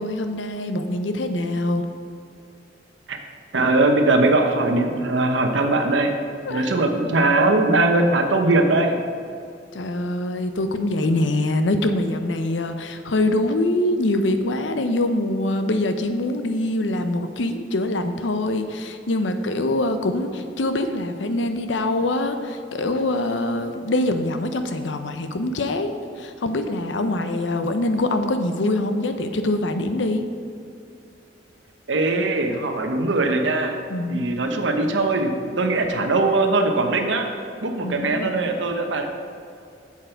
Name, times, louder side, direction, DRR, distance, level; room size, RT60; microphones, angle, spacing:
voice 1, 0.0-1.8 6.4-6.9 9.7-30.2 33.9-34.3 37.8-38.5, left 1 dB, 85° left, 8 dB, 0.7 m, -24 dB
voice 2, 3.5-6.1 6.5-9.0 31.9-33.7 34.1-37.3 37.6-39.1, right 2 dB, 85° right, 5 dB, 0.9 m, -20 dB
7.7 x 7.4 x 4.5 m, 2.4 s
head